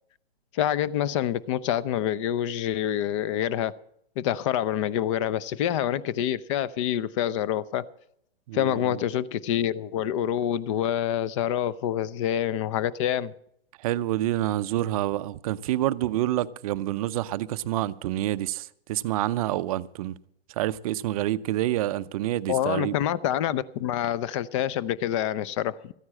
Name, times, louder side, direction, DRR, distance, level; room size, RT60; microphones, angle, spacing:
voice 1, 0.5-3.7 4.2-7.8 8.5-13.3 22.5-25.9, left 11 dB, 30° left, 0.5 m, -27 dB
voice 2, 8.5-9.0 13.8-20.2 20.6-23.0, right 14 dB, 35° right, 0.5 m, -28 dB
13.5 x 9.5 x 7.5 m
hypercardioid pair, 140°, 31 cm